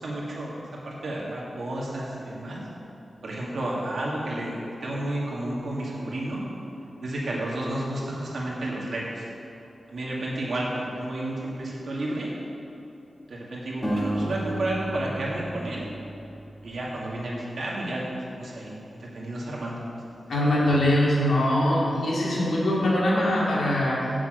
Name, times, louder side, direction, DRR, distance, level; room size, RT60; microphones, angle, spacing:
voice 1, 0.0-2.6 3.2-6.4 7.0-9.2 9.9-12.3 13.3-15.9 16.6-20.0, right 1 dB, 60° right, -5 dB, 2.2 m, -31 dB
sound 1, 13.8-17.0, right 1 dB, 10° left, 1.9 m, -33 dB
voice 2, 20.3-24.1, left 1 dB, 85° left, -5 dB, 2.4 m, -22 dB
7.5 x 6.2 x 7.9 m, 2.9 s
wide cardioid pair, 140°, 0 cm